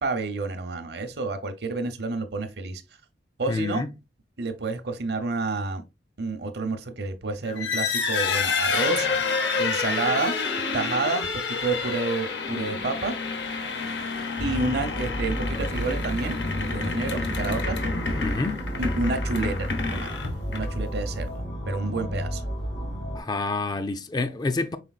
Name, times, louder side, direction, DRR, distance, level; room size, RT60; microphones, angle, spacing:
voice 1, 0.0-2.8 3.4-3.8 4.4-5.8 6.2-9.1 9.6-10.3 10.7-13.2 14.4-17.8 18.0-18.2 18.8-20.1 20.5-22.4, right 3 dB, 60° right, 0.7 m, -29 dB
voice 2, 3.5-3.9 18.2-18.6 23.1-24.8, left 3 dB, 20° left, 0.3 m, -28 dB
sound 1, 7.5-20.9, left 4 dB, 70° left, 0.9 m, -29 dB
sound 2, 14.4-23.2, equal, 90° left, 2.0 m, -32 dB
5.0 x 3.8 x 2.3 m
head